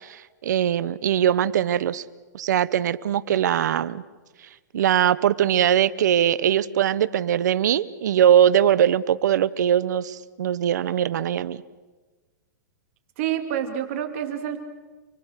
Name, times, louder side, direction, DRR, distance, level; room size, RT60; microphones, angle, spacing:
voice 1, 0.0-2.0 2.3-4.0 4.7-11.6, right 10 dB, 70° right, 18 dB, 1.0 m, -21 dB
voice 2, 13.2-14.6, right 10 dB, 45° right, 6 dB, 2.8 m, -27 dB
29.5 x 22.0 x 6.6 m, 1.3 s
hypercardioid pair, 160°, 10 cm